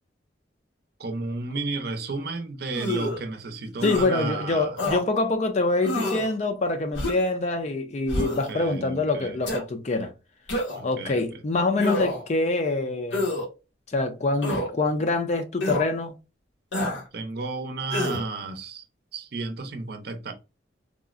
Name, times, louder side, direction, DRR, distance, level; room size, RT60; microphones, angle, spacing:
voice 1, 1.0-4.8 8.2-9.4 10.8-11.4 17.1-18.8 19.1-20.3, right 3 dB, 60° right, 0.6 m, -33 dB
sound 1, 2.7-3.2 3.8-4.1 4.8-5.0 5.8-6.3 6.9-7.3 8.1-8.5 9.4-9.6 10.5-10.9 11.8-12.3 13.1-13.5 14.4-14.7 15.6-15.9 16.7-17.0 17.9-18.2, left 1 dB, 80° left, 1.0 m, -27 dB
voice 2, 3.8-10.1 10.8-13.3 13.9-16.1, left 2 dB, 40° left, 0.5 m, -25 dB
3.6 x 2.0 x 2.4 m
head